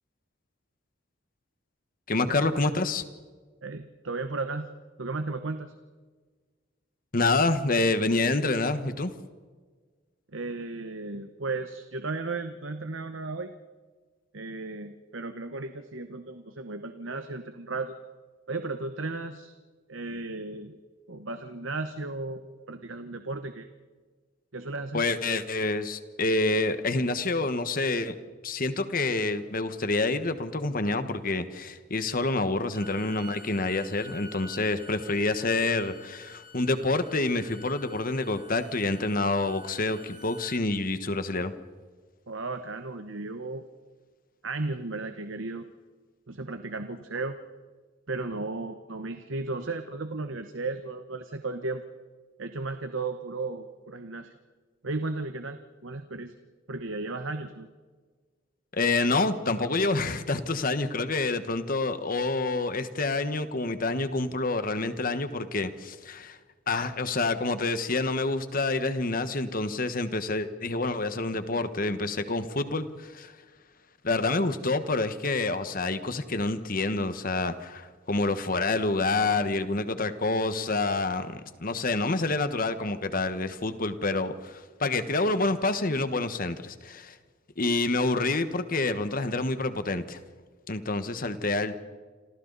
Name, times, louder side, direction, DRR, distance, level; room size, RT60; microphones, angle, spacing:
voice 1, 2.1-3.0 7.1-9.1 24.9-28.1 28.4-41.5 58.7-66.4 66.7-73.3 74.0-87.2 87.6-90.2 90.7-91.8, left 3 dB, 45° left, 10 dB, 1.4 m, -27 dB
voice 2, 3.6-4.7 5.0-5.7 10.3-13.5 14.3-18.0 18.5-19.5 19.9-20.8 21.1-23.7 24.5-25.0 42.3-43.6 44.4-45.7 46.3-47.4 48.1-51.8 52.4-54.3 54.8-56.3 56.7-57.7, right 3 dB, 80° right, 8 dB, 1.1 m, -35 dB
Bowed string instrument, 32.7-40.6, left 1 dB, 25° right, 2.5 m, -48 dB
28.5 x 26.5 x 4.1 m, 1.5 s
head